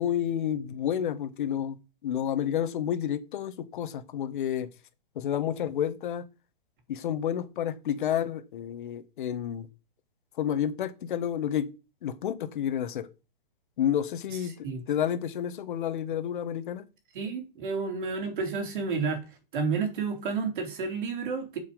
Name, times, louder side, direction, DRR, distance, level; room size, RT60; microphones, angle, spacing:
voice 1, 0.0-1.8 2.0-4.7 5.1-6.2 6.9-9.7 10.4-11.7 12.0-13.1 13.8-16.9, left 9 dB, 55° left, 1.5 m, -30 dB
voice 2, 17.1-19.2 19.5-21.6, right 5 dB, 60° right, 3.5 m, -30 dB
7.5 x 7.4 x 5.2 m
hypercardioid pair, 145°, 29 cm